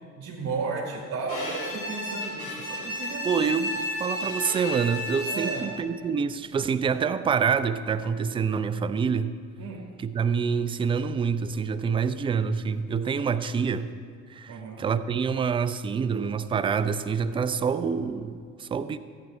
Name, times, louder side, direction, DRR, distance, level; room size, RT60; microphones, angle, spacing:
voice 1, 0.2-3.3 5.3-5.6 9.6-9.9 14.5-14.8, right 4 dB, 40° right, -3 dB, 1.7 m, -34 dB
Bowed string instrument, 1.3-5.9, left 1 dB, 80° left, 2.7 m, -33 dB
voice 2, 3.2-9.3 10.0-13.9 14.3-19.0, right 6 dB, 15° right, 13 dB, 0.3 m, -27 dB
14.5 x 9.2 x 4.4 m, 2.1 s
figure-of-eight pair, 55°, 43 cm